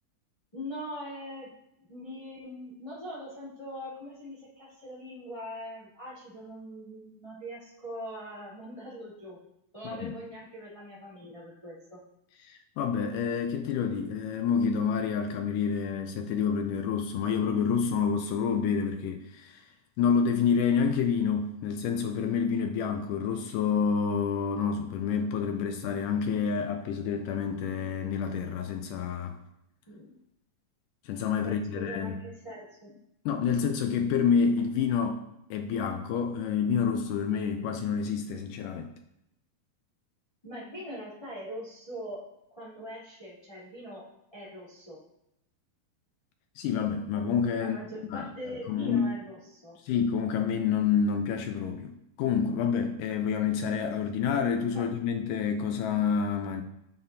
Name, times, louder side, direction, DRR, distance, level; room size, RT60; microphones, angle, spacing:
voice 1, 0.5-1.5 1.9-9.4 9.7-12.0 29.9-30.2 31.4-33.0 40.4-42.2 42.5-44.0 44.3-45.0 47.6-49.8 54.7-54.9, equal, 10° left, -9 dB, 2.6 m, -42 dB
voice 2, 12.4-19.7 20.0-29.4 31.1-32.2 33.3-35.2 35.5-38.9 46.6-47.8 48.1-48.3 48.7-49.1 49.8-56.6, left 6 dB, 80° left, 6 dB, 1.9 m, -28 dB
10.5 x 5.9 x 2.7 m, 0.82 s
omnidirectional pair, 4.3 m